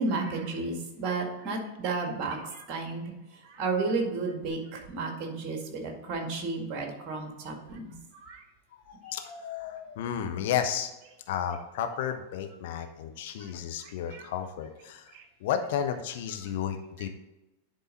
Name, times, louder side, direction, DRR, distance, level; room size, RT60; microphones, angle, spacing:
voice 1, 0.0-3.1 3.5-8.4 13.8-14.2 15.1-15.2, right 3 dB, 35° right, 2 dB, 1.8 m, -33 dB
voice 2, 8.9-10.9 11.3-15.1 15.4-17.1, left 9 dB, 50° left, 6 dB, 0.8 m, -32 dB
10.5 x 3.9 x 4.1 m, 1.0 s
figure-of-eight pair, 90°, 0 cm